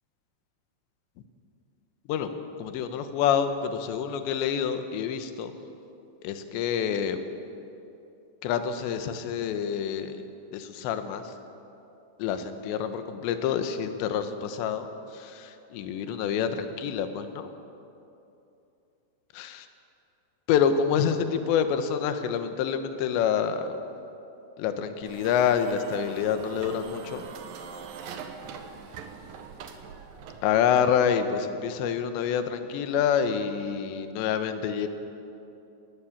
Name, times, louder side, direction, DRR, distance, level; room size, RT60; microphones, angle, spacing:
voice 1, 2.6-5.5 6.2-7.2 8.4-11.3 12.2-17.5 19.3-19.7 20.5-23.8 24.6-27.2 30.4-34.9, left 8 dB, 75° left, 9 dB, 3.0 m, -27 dB
sound 1, 25.0-30.8, right 6 dB, 75° right, 2.0 m, -43 dB
20.0 x 19.5 x 7.3 m, 2.8 s
omnidirectional pair, 6.0 m